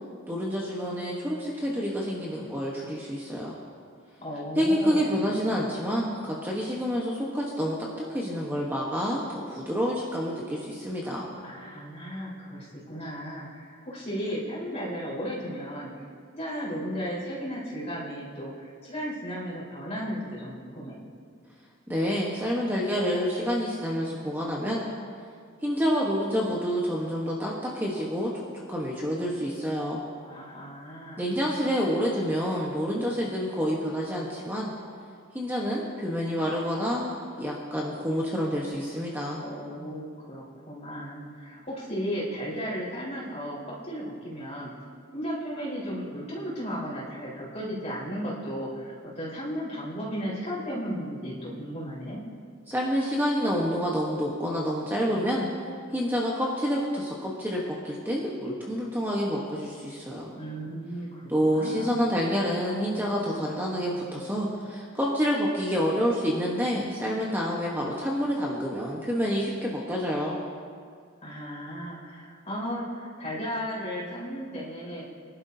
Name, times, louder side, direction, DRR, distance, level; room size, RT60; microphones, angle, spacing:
voice 1, 0.3-3.6 4.5-7.8 8.1-11.3 21.9-24.8 25.6-28.4 28.7-30.0 31.2-34.7 35.3-39.4 52.7-55.5 55.9-60.3 61.3-70.4, equal, 10° right, -3 dB, 1.1 m, -28 dB
voice 2, 4.2-5.1 11.4-15.9 16.3-21.0 30.3-31.3 39.4-44.7 45.1-52.2 60.3-61.9 71.2-75.0, equal, 30° left, -7 dB, 4.1 m, -35 dB
23.0 x 11.5 x 2.7 m, 2.1 s
head